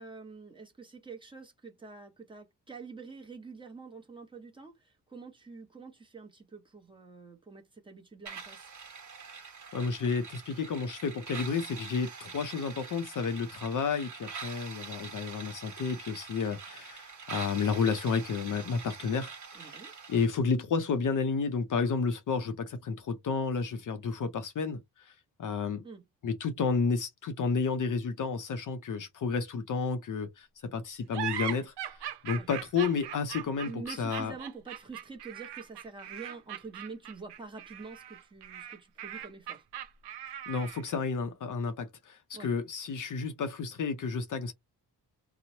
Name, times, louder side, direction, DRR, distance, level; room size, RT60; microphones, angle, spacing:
voice 1, 0.0-8.7 19.5-19.9 25.8-26.0 32.3-32.5 33.6-39.6 42.3-42.5, right 4 dB, 10° right, 0.7 m, -46 dB
sound 1, 8.3-20.3, right 5 dB, 45° right, 1.1 m, -45 dB
voice 2, 9.7-19.8 20.1-25.1 25.4-25.8 26.2-32.0 32.2-34.3 40.5-44.5, left 5 dB, 50° left, 0.5 m, -31 dB
sound 2, 31.1-41.0, right 11 dB, 80° right, 0.6 m, -40 dB
2.9 x 2.0 x 2.8 m
wide cardioid pair, 140°, 40 cm